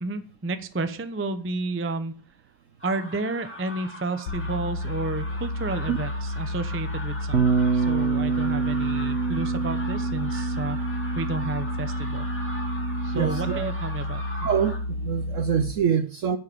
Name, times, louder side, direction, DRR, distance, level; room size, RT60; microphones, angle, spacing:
voice 1, 0.0-2.1 2.8-12.3 13.0-14.2, right 2 dB, 15° right, 0.4 m, -31 dB
sound 1, 2.8-14.8, left 1 dB, 5° left, 2.7 m, -41 dB
sound 2, 4.3-15.7, left 1 dB, 75° left, 1.6 m, -31 dB
Bass guitar, 7.3-13.6, right 5 dB, 40° right, 1.3 m, -27 dB
voice 2, 13.1-13.7 14.4-16.4, right 8 dB, 65° right, 0.8 m, -25 dB
10.0 x 6.8 x 6.8 m
omnidirectional pair, 2.0 m